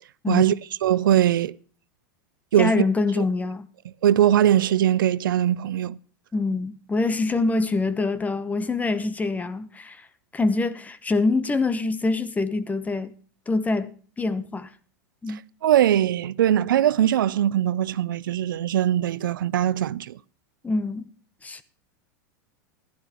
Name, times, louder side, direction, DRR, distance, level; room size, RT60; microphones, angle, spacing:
voice 1, 0.8-1.5 2.5-2.8 3.2-3.3 4.0-6.0 15.6-20.2, right 11 dB, 80° right, 0.4 m, -21 dB
voice 2, 2.6-3.7 6.3-10.1 10.3-13.1 13.5-14.7 15.2-15.4 20.6-21.1 21.4-21.6, left 3 dB, 15° left, 0.9 m, -25 dB
15.5 x 11.5 x 3.0 m
hypercardioid pair, 100°, 11 cm